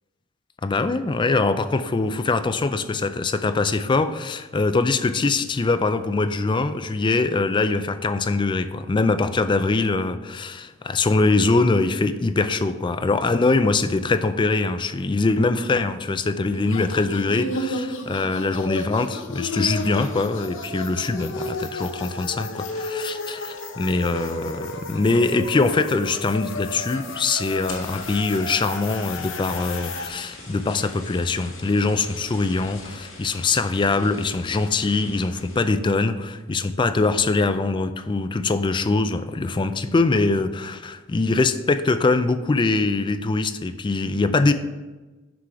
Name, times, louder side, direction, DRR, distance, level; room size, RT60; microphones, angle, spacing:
voice 1, 0.6-44.5, left 3 dB, 25° left, 10 dB, 0.4 m, -23 dB
sound 1, 16.5-30.1, left 2 dB, 65° left, 0.7 m, -33 dB
sound 2, 19.4-25.5 25.8-26.3 26.6-26.7 27.0-27.1 27.5-35.9 36.3-36.7 37.1-37.5, left 2 dB, 85° left, 1.8 m, -44 dB
6.0 x 4.9 x 5.8 m, 1.2 s
head